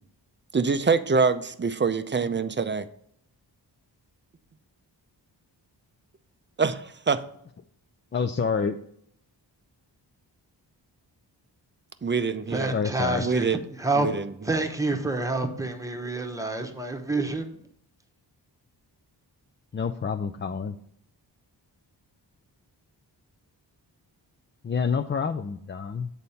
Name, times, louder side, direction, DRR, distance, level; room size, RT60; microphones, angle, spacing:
voice 1, 0.5-2.9 6.6-7.2 12.0-12.7 13.2-13.6 13.9-14.5, right 5 dB, 25° right, 0.5 m, -25 dB
voice 2, 8.1-8.8 12.7-13.3 19.7-20.8 24.6-26.1, left 5 dB, 30° left, 0.4 m, -28 dB
voice 3, 12.5-13.4 13.8-14.1 14.5-17.5, right 2 dB, 10° right, 1.0 m, -27 dB
8.2 x 4.1 x 5.6 m
wide cardioid pair, 85°, 43 cm